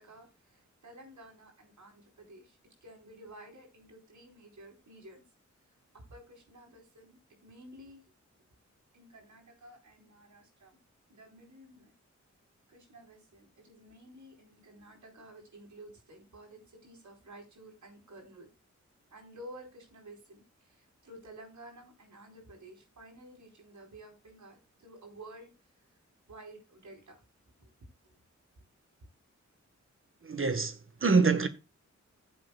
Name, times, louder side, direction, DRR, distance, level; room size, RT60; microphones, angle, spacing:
voice 1, 0.0-5.2 6.1-8.0 8.9-10.8 11.1-11.9 12.7-18.5 19.1-25.5 25.8-25.9 26.3-27.2 27.6-27.7 28.0-28.1, right 1 dB, 75° right, 4.4 m, -52 dB
voice 2, 30.2-31.5, right 4 dB, 45° right, 1.4 m, -26 dB
15.0 x 7.6 x 2.3 m
wide cardioid pair, 70°, 29 cm